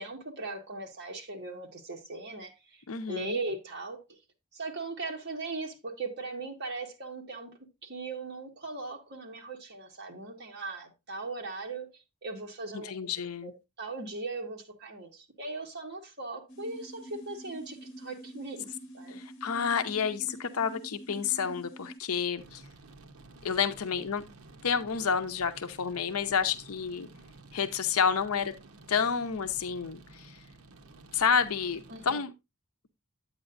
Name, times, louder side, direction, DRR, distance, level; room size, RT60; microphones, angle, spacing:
voice 1, 0.0-4.2 4.5-7.5 7.8-12.9 13.4-13.5 13.8-18.6 18.9-19.2 31.9-32.2, right 3 dB, 50° right, 1.7 m, -39 dB
voice 2, 2.9-3.4 12.7-13.5 19.1-22.6 23.4-24.2 24.6-27.1 27.5-28.5 28.9-30.4 31.1-32.3, left 6 dB, 80° left, 0.6 m, -30 dB
sound 1, 16.5-22.0, right 1 dB, 55° left, 1.2 m, -46 dB
sound 2, 22.4-32.2, right 2 dB, 70° right, 0.9 m, -52 dB
8.9 x 8.8 x 2.5 m
head